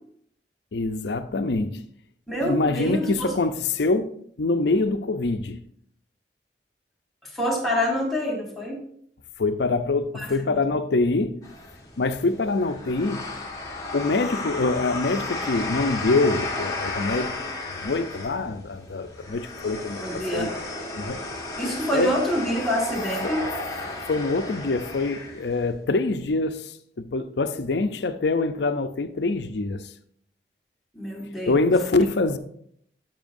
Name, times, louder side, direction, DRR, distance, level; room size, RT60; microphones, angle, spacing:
voice 1, 0.7-1.8 2.4-4.1 4.4-5.6 9.4-11.4 12.0-13.3 13.9-17.3 17.8-20.6 20.9-21.2 21.9-22.1 23.2-23.3 24.1-29.8 31.5-32.4, left 3 dB, 75° left, 0.6 m, -25 dB
voice 2, 2.3-3.3 7.2-8.8 10.1-10.3 20.0-20.5 21.6-23.5 30.9-31.7, equal, ahead, 1.6 m, -26 dB
sound 1, 11.4-25.7, left 2 dB, 20° left, 1.2 m, -34 dB
12.5 x 5.6 x 2.6 m
head